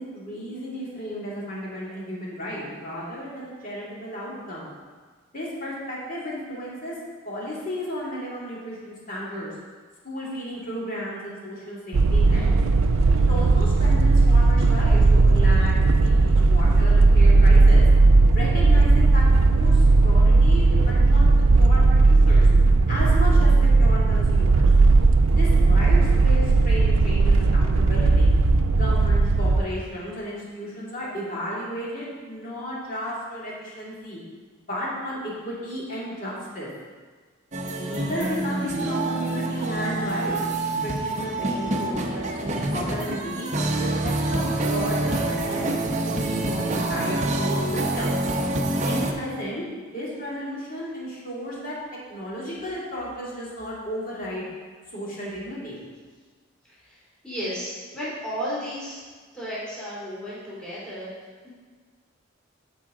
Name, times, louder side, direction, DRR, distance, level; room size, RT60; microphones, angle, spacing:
voice 1, 0.0-4.7 5.3-7.0 7.2-9.5 10.0-12.5 13.3-17.9 18.3-21.3 21.6-22.5 22.9-23.5 23.8-24.7 25.3-28.3 28.7-34.2 34.7-36.7 37.8-40.4 40.8-43.5 43.8-45.7 46.0-48.2 48.9-49.6 49.9-51.8 52.1-54.5 54.9-55.8, equal, 40° left, -6 dB, 2.3 m, -33 dB
sound 1, 11.9-29.6, right 3 dB, 90° right, 0.5 m, -17 dB
sound 2, 37.5-49.1, right 2 dB, 35° right, 0.6 m, -26 dB
voice 2, 57.2-59.0 59.3-61.1 61.4-61.5, equal, 5° left, -9 dB, 2.4 m, -33 dB
13.5 x 4.8 x 3.7 m, 1.5 s
head